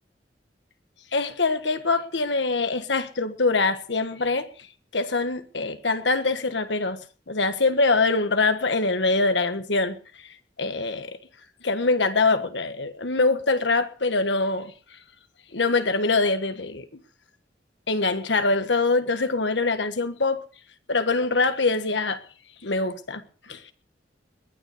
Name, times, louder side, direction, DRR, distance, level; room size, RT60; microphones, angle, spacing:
voice 1, 1.1-4.5 4.9-7.0 7.3-11.2 11.6-14.7 15.5-16.9 17.9-20.4 20.9-22.2 22.6-23.7, left 3 dB, 80° left, 1.5 m, -24 dB
21.0 x 9.6 x 5.0 m
head